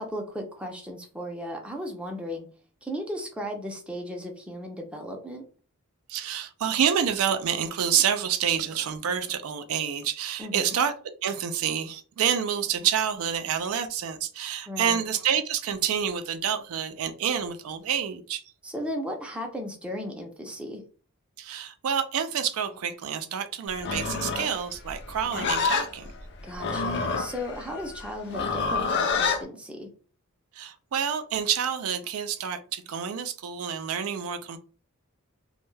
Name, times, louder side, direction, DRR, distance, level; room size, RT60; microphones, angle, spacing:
voice 1, 0.0-2.5 2.8-5.4 10.4-10.7 14.7-15.0 18.6-20.8 26.4-29.9, equal, 5° right, 0.5 m, -36 dB
voice 2, 6.1-10.9 11.2-18.4 21.4-26.1 30.5-34.6, right 8 dB, 80° right, 0.4 m, -28 dB
Livestock farm animals working animals, 23.7-29.4, left 5 dB, 55° left, 0.4 m, -28 dB
2.2 x 2.1 x 3.1 m
head